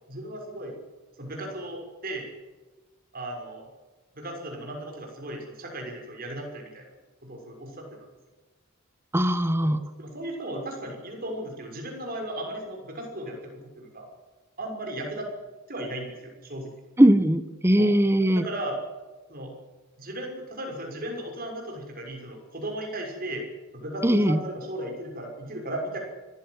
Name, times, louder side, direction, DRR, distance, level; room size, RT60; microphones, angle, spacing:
voice 1, 0.1-0.8 1.2-2.3 3.1-3.6 4.1-6.8 7.2-8.1 9.6-13.5 13.8-14.1 14.6-15.3 15.7-16.7 17.8-17.9 18.3-18.8 19.3-19.5 20.0-23.4 23.7-26.0, right 1 dB, 45° right, 1 dB, 6.2 m, -36 dB
voice 2, 9.1-9.8 17.0-18.4 24.0-24.4, right 1 dB, 10° right, 12 dB, 1.1 m, -20 dB
24.5 x 15.0 x 8.2 m, 1.3 s
head